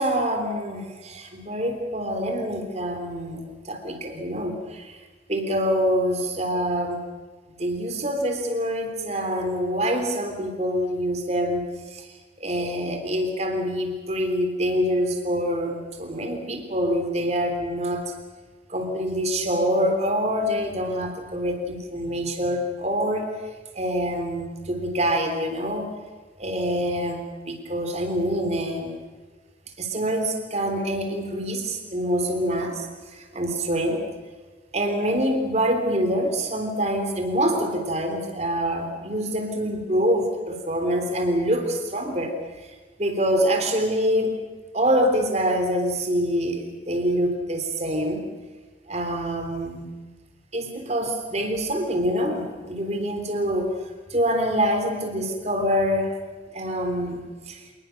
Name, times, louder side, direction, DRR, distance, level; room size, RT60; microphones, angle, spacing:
voice 1, 0.0-5.0 5.3-7.1 7.6-12.0 12.4-18.0 18.7-23.3 23.8-25.9 26.4-29.0 29.8-32.9 33.1-34.0 34.7-42.3 43.0-44.4 44.7-48.2 48.9-49.9 50.5-53.7 54.1-56.1 56.5-57.6, equal, 35° right, 5 dB, 3.5 m, -25 dB
27.0 x 20.0 x 6.6 m, 1.4 s
head